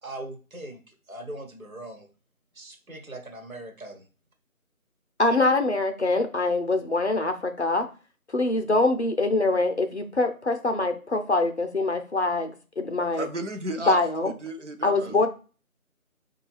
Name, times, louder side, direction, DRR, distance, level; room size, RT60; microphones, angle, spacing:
voice 1, 0.0-0.8 1.1-2.1 2.5-4.0, right 1 dB, 70° right, 4 dB, 1.2 m, -40 dB
voice 2, 5.2-7.9 8.3-13.3 13.8-14.3 14.8-15.3, left 2 dB, 50° left, 6 dB, 0.5 m, -24 dB
voice 3, 13.1-15.3, right 2 dB, 55° right, 5 dB, 0.6 m, -34 dB
4.5 x 2.3 x 3.2 m, 0.35 s
figure-of-eight pair, 160°, 43 cm